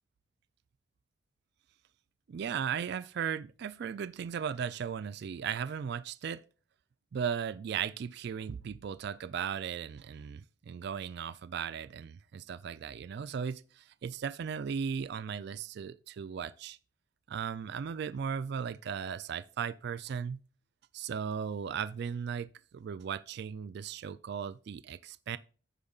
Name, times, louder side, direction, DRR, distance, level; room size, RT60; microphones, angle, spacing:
voice 1, 2.3-6.4 7.1-16.8 17.3-20.4 20.9-25.4, right 7 dB, 55° right, 0.3 m, -37 dB
15.0 x 5.1 x 2.3 m
head